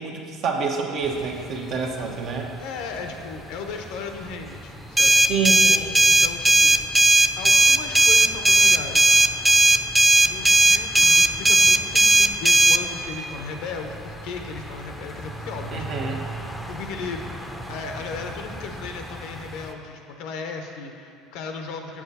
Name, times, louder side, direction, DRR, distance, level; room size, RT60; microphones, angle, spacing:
voice 1, 0.0-2.5 5.3-5.9 15.7-16.2, right 5 dB, 55° right, 1 dB, 1.0 m, -27 dB
sound 1, 1.0-19.7, equal, 5° left, 0.7 m, -40 dB
voice 2, 2.6-5.3 6.2-6.8 7.4-9.8 10.2-16.0 16.7-17.3 17.7-22.0, left 4 dB, 65° left, 4 dB, 0.8 m, -36 dB
sound 2, 5.0-12.8, right 2 dB, 10° right, 0.3 m, -16 dB
7.4 x 6.0 x 4.2 m, 2.4 s
hypercardioid pair, 75°, 0 cm